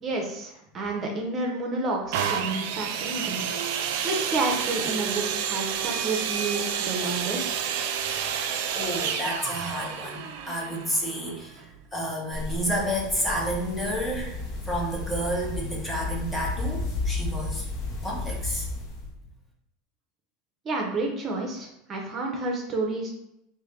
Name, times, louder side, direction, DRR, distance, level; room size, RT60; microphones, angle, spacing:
voice 1, 0.0-3.4 4.0-7.6 20.6-23.1, right 2 dB, 35° right, 0 dB, 0.8 m, -30 dB
sound 1, 2.1-11.8 12.5-12.6, right 8 dB, 70° right, 0.4 m, -30 dB
voice 2, 8.7-14.4 14.7-17.7 18.0-18.7, equal, 10° left, -2 dB, 1.1 m, -30 dB
sound 2, 12.3-19.1, left 3 dB, 50° left, 1.2 m, -33 dB
3.2 x 2.7 x 3.7 m, 0.81 s
hypercardioid pair, 95°, 0 cm